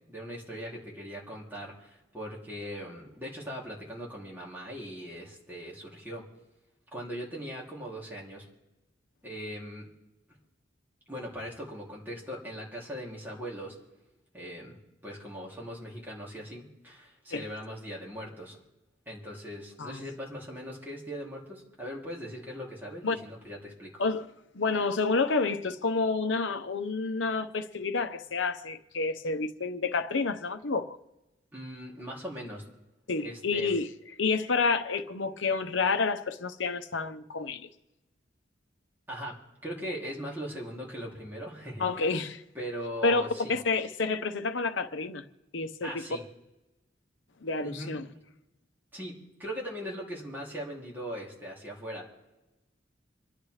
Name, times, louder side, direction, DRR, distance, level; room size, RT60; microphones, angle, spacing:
voice 1, 0.1-6.2 6.9-8.5 9.2-9.9 11.1-13.8 14.3-14.8 15.0-18.6 19.1-24.0 31.5-32.6 33.2-33.7 39.1-39.4 39.6-42.1 42.5-43.5 45.8-46.2 47.6-47.9 48.9-52.1, equal, 10° right, 2.7 m, -40 dB
voice 2, 24.5-31.0 33.1-33.9 34.2-37.7 41.8-42.4 43.0-45.2 45.5-46.0 47.4-48.1, left 4 dB, 75° left, 0.8 m, -29 dB
28.5 x 10.0 x 3.2 m
head